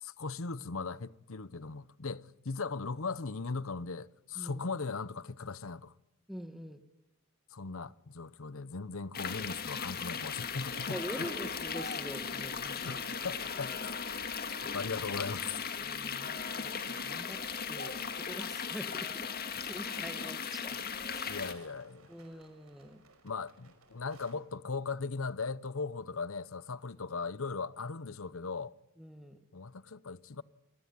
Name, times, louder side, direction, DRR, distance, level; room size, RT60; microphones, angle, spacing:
voice 1, 0.0-5.9 7.5-11.3 12.9-14.0 14.7-15.6 21.3-22.1 23.2-28.7 29.5-30.4, left 4 dB, 65° left, 0.9 m, -38 dB
voice 2, 6.3-6.8 10.9-13.0 13.6-13.7 15.8-17.4 17.7-19.3 19.6-20.8 21.1-21.4 22.1-23.0 29.0-29.4, equal, ahead, 1.5 m, -45 dB
sound 1, 9.1-21.5, left 6 dB, 45° left, 2.0 m, -37 dB
sound 2, 10.6-24.3, right 3 dB, 70° right, 5.4 m, -56 dB
27.5 x 18.5 x 9.6 m
head